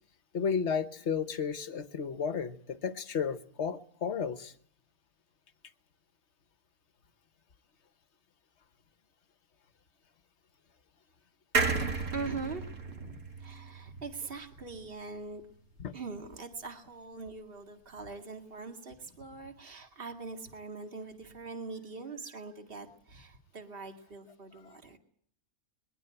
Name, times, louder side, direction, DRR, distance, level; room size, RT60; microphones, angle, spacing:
voice 1, 0.3-4.5 15.8-15.9, left 6 dB, 50° left, 11 dB, 1.3 m, -33 dB
sound 1, 11.5-15.0 15.4-15.5 15.7-15.8, right 4 dB, 70° right, 2.4 m, -33 dB
voice 2, 11.6-15.4 15.9-25.0, right 4 dB, 40° right, 4 dB, 2.2 m, -42 dB
22.0 x 15.5 x 9.0 m, 0.64 s
omnidirectional pair, 1.6 m